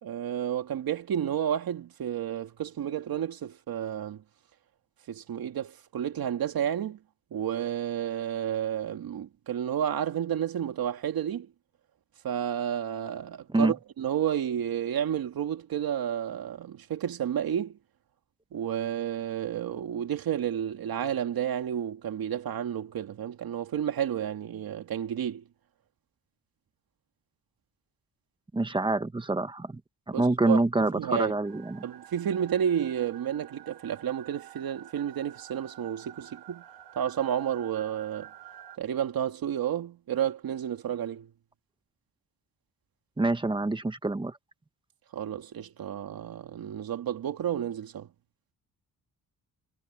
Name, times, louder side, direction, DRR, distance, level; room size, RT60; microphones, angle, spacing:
voice 1, 0.0-4.2 5.1-7.0 7.3-11.5 12.2-17.8 18.5-25.4 30.1-30.6 31.0-31.3 31.8-36.6 37.0-38.3 38.8-41.3 45.1-48.1, right 9 dB, 65° right, 2.3 m, -31 dB
voice 2, 28.5-29.8 30.1-31.8 43.2-44.4, right 2 dB, 10° right, 1.3 m, -26 dB
sound 1, 31.4-38.8, right 11 dB, 80° right, 3.6 m, -50 dB
wide cardioid pair, 150°, 38 cm